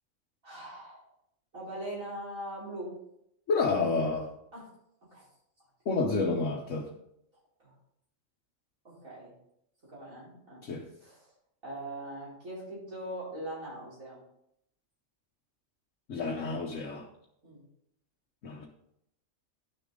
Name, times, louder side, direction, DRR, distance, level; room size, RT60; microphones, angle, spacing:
voice 1, 0.4-1.1 1.5-2.9 4.5-4.7 5.1-5.3 7.6-7.7 8.8-9.3 9.9-10.6 10.9-11.3 11.6-14.2 17.4-17.6, right 1 dB, 80° right, -7 dB, 5.0 m, -41 dB
voice 2, 3.5-4.3 5.8-6.9 10.6-10.8 16.1-17.1 18.4-18.7, left 3 dB, 70° left, 0 dB, 1.4 m, -29 dB
11.5 x 6.7 x 3.8 m, 0.76 s
omnidirectional pair, 1.4 m